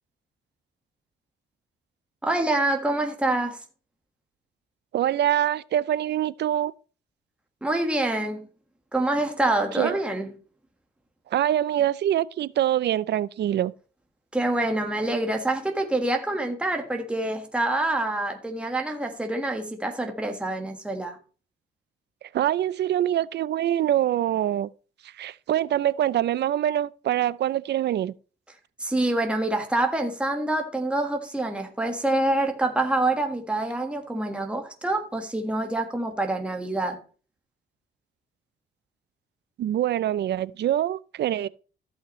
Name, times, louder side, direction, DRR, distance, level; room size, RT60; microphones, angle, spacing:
voice 1, 2.2-3.6 7.6-8.5 8.9-10.3 14.3-21.2 28.8-37.0, right 2 dB, 5° right, 1.6 m, -26 dB
voice 2, 4.9-6.7 9.7-10.0 11.3-13.7 22.3-24.7 25.2-28.1 39.6-41.5, right 11 dB, 60° right, 0.5 m, -24 dB
15.0 x 5.7 x 3.1 m
cardioid pair, 90°, 20 cm